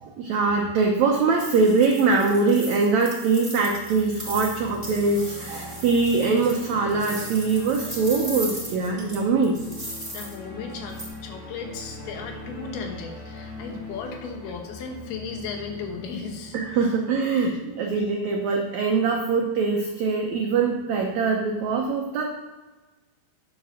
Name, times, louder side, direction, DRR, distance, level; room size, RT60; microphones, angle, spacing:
voice 1, 0.2-9.6 16.5-22.3, right 4 dB, 80° right, 1 dB, 1.6 m, -23 dB
sound 1, 1.4-10.3 10.9-11.1, right 1 dB, 5° right, 2.6 m, -38 dB
sound 2, 3.6-17.8, left 3 dB, 30° left, 1.8 m, -42 dB
voice 2, 10.1-16.9 17.3-17.6, left 5 dB, 80° left, 3 dB, 3.1 m, -36 dB
10.5 x 5.4 x 6.4 m, 1.2 s
omnidirectional pair, 4.5 m